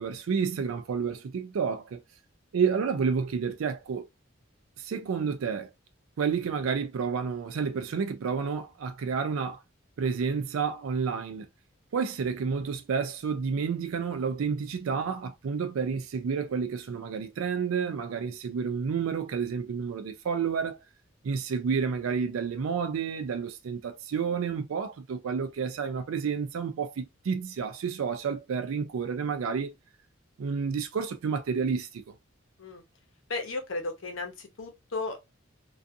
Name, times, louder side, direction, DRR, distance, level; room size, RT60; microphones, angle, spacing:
voice 1, 0.0-2.0 2.5-4.1 4.8-5.7 6.2-9.6 10.0-11.5 11.9-20.8 21.2-29.7 30.4-32.0, right 6 dB, 85° right, 0.4 m, -30 dB
voice 2, 33.3-35.2, left 3 dB, 65° left, 0.7 m, -34 dB
2.6 x 2.4 x 2.3 m
head